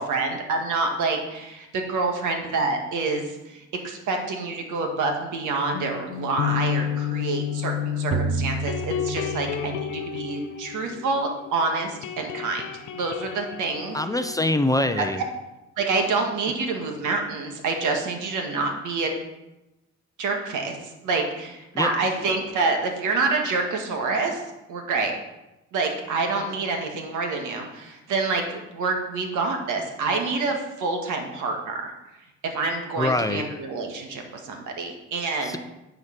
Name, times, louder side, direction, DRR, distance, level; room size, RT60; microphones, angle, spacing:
voice 1, 0.0-12.6 12.9-14.0 15.0-15.1 15.8-19.1 20.2-20.8 21.0-24.4 24.7-25.1 25.7-31.9 32.4-35.6, right 3 dB, 80° right, 3 dB, 1.8 m, -27 dB
sound 1, 5.7-11.6 11.8-15.3, left 9 dB, 90° left, 0.8 m, -31 dB
sound 2, 8.1-10.0, right 10 dB, 50° right, 0.5 m, -31 dB
voice 2, 13.9-15.2 21.7-21.9 33.0-33.4 35.4-35.6, left 1 dB, 10° left, 8 dB, 0.5 m, -24 dB
9.5 x 5.1 x 5.9 m, 0.97 s
cardioid pair, 90°, 30 cm